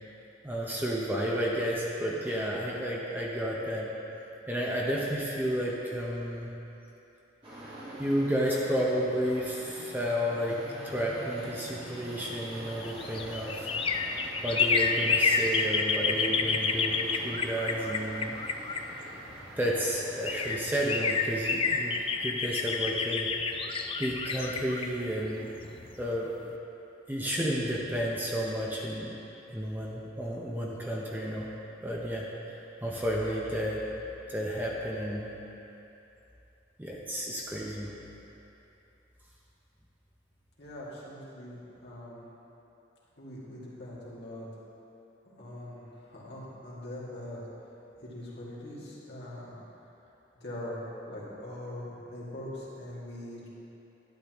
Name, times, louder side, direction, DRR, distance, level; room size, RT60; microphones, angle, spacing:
voice 1, 0.4-3.9 4.5-6.5 8.0-10.6 10.8-13.7 14.4-18.4 19.6-22.0 22.2-23.6 24.0-25.5 26.0-26.3 27.1-29.2 29.5-31.5 31.8-32.3 32.8-33.8 34.3-35.3 36.8-37.9, equal, 10° right, -4 dB, 0.8 m, -31 dB
sound 1, 7.4-22.3, equal, 30° right, 1.8 m, -45 dB
sound 2, 12.6-19.4 19.9-20.0 20.2-26.0 26.4-26.5, left 4 dB, 30° left, 0.4 m, -29 dB
voice 2, 40.6-42.2 43.2-44.5 45.2-47.4 48.0-49.5 50.4-53.5, left 1 dB, 60° left, -7 dB, 2.2 m, -42 dB
11.5 x 9.5 x 3.1 m, 2.9 s
head